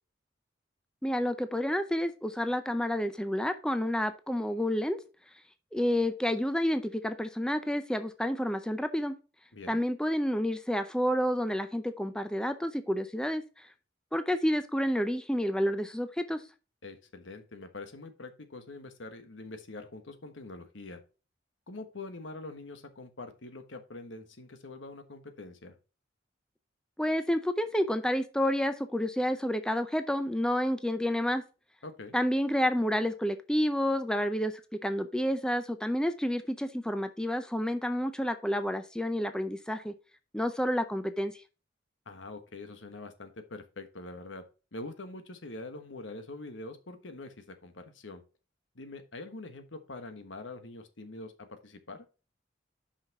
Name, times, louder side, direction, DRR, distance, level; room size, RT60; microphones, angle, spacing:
voice 1, 1.0-5.0 5.7-9.1 9.7-13.4 14.1-16.4 27.0-31.4 32.1-34.5 34.8-39.9 40.3-41.3, equal, 5° left, 9 dB, 0.5 m, -29 dB
voice 2, 16.8-21.0 21.7-25.8 31.8-32.2 42.1-44.4 44.7-48.2 48.7-52.1, left 2 dB, 85° left, 8 dB, 1.3 m, -44 dB
5.7 x 5.7 x 4.7 m, 0.32 s
head